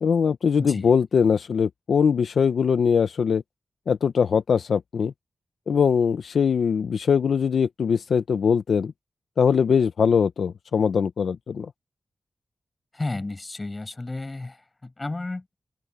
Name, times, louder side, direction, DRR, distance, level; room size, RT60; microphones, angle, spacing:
voice 1, 0.0-3.4 3.9-5.1 5.7-8.9 9.4-11.7, left 6 dB, 80° left, 0.7 m, -21 dB
voice 2, 0.6-0.9 12.9-14.6 14.8-15.4, left 2 dB, 35° left, 7.2 m, -32 dB
open air
cardioid pair, 50°, 0 cm